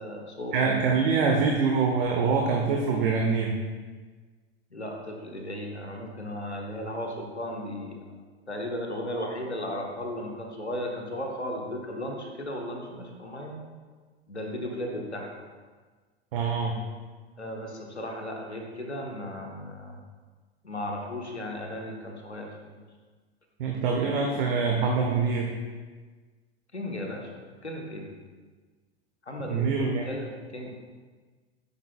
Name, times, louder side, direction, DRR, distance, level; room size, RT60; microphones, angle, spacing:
voice 1, 0.0-0.6 4.7-8.1 8.5-13.6 14.3-15.4 17.4-20.0 20.6-22.8 26.7-27.3 27.6-28.1 29.3-30.7, left 1 dB, 90° left, 2 dB, 1.2 m, -35 dB
voice 2, 0.5-3.6 16.3-16.7 23.6-25.5 29.4-30.1, right 5 dB, 55° right, 1 dB, 1.0 m, -25 dB
9.4 x 7.2 x 2.3 m, 1.4 s
figure-of-eight pair, 85°, 32 cm